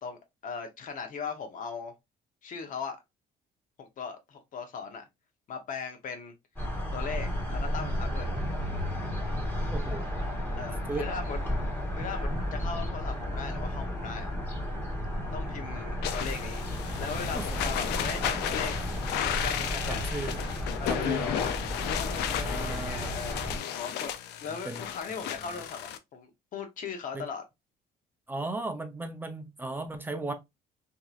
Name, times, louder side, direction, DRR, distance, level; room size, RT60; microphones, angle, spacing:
voice 1, 0.0-1.9 2.4-3.0 3.8-5.0 5.5-6.3 6.9-8.3 10.6-11.4 12.0-14.3 15.3-16.6 17.0-18.7 19.2-20.1 20.8-21.5 21.9-24.1 24.4-27.4, left 6 dB, 50° left, 0.9 m, -38 dB
sound 1, 6.6-23.6, equal, 10° left, 1.6 m, -33 dB
voice 2, 9.7-10.1 10.9-11.1 17.3-17.6 18.0-18.1 19.3-19.4 19.9-20.4 20.9-21.5 22.3-23.2 24.6-24.8 27.1-27.3 28.3-30.3, right 2 dB, 10° right, 0.5 m, -36 dB
sound 2, 16.0-26.0, left 10 dB, 80° left, 0.4 m, -34 dB
2.9 x 2.7 x 2.4 m
cardioid pair, 110°, 17 cm